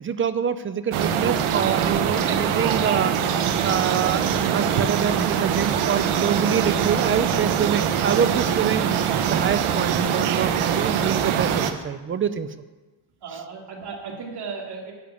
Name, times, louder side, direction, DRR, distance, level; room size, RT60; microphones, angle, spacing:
voice 1, 0.0-3.2 3.6-12.5, right 7 dB, 30° right, 12 dB, 0.4 m, -25 dB
sound 1, 0.9-11.7, right 8 dB, 80° right, 1.1 m, -23 dB
voice 2, 13.2-14.9, right 5 dB, 50° right, -2 dB, 2.8 m, -35 dB
11.0 x 7.0 x 9.3 m, 1.2 s
cardioid pair, 170°, 49 cm